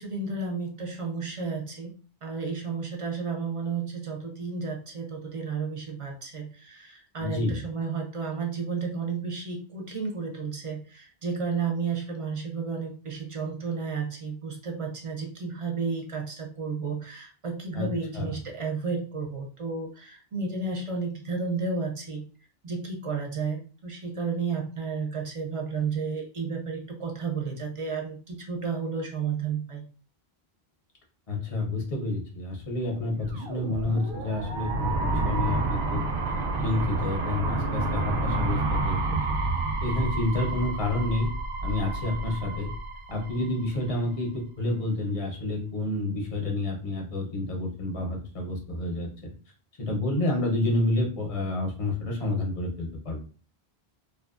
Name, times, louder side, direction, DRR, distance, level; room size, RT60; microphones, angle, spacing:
voice 1, 0.0-1.9 2.2-22.2 22.6-29.8, right 5 dB, 45° right, 0 dB, 0.5 m, -32 dB
voice 2, 7.2-7.6 17.7-17.9 18.1-18.3 31.3-36.0 36.6-39.2 39.8-41.3 41.6-42.7 43.1-49.3 49.8-53.2, left 2 dB, 40° left, 1 dB, 0.6 m, -29 dB
sound 1, 33.0-43.9, right 3 dB, 85° right, 0.8 m, -29 dB
2.6 x 2.3 x 2.4 m, 0.37 s
omnidirectional pair, 1.0 m